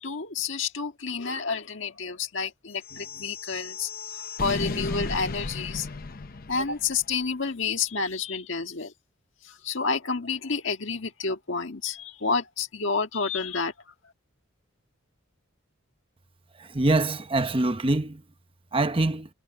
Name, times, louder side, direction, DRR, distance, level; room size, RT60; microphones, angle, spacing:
voice 1, 0.0-5.9 6.5-8.9 9.4-13.7, left 5 dB, 65° left, 1.8 m, -29 dB
sound 1, 2.8-7.1, left 3 dB, 45° left, 0.7 m, -35 dB
voice 2, 16.6-18.2 18.7-19.3, right 2 dB, 25° right, 0.9 m, -24 dB
head